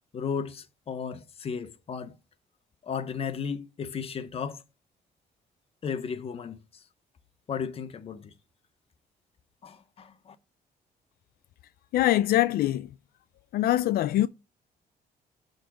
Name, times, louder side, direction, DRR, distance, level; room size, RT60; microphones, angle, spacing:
voice 1, 0.1-2.1 2.8-4.6 5.8-6.8 7.5-8.3 9.6-10.4, left 6 dB, 40° left, 0.9 m, -35 dB
voice 2, 11.9-12.9 13.5-14.3, left 14 dB, 80° left, 0.4 m, -23 dB
12.0 x 4.0 x 4.7 m
cardioid pair, 160°, 15 cm